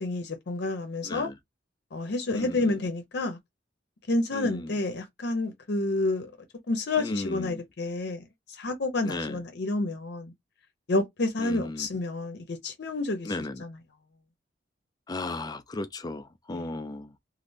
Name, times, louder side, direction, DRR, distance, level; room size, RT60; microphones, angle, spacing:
voice 1, 0.0-1.3 1.9-3.4 4.1-6.3 6.7-8.2 8.6-10.3 10.9-13.3 13.6-13.8 16.5-16.7, left 2 dB, 65° left, 0.6 m, -29 dB
voice 2, 1.0-1.3 2.3-2.8 4.3-4.8 7.0-7.6 9.0-9.4 11.4-11.9 13.2-13.7 15.1-17.1, left 2 dB, 20° left, 0.4 m, -35 dB
3.1 x 2.5 x 2.6 m
head